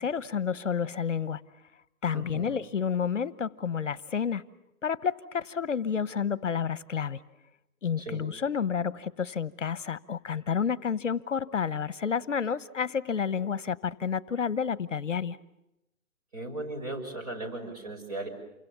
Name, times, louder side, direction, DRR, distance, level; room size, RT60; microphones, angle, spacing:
voice 1, 0.0-1.4 2.0-4.4 4.8-7.2 7.8-15.4, left 7 dB, 60° left, 17 dB, 1.1 m, -30 dB
voice 2, 2.1-2.6 8.0-8.2 16.3-18.3, right 2 dB, 25° right, 2 dB, 6.1 m, -37 dB
29.0 x 25.0 x 7.0 m, 0.88 s
hypercardioid pair, 175°, 42 cm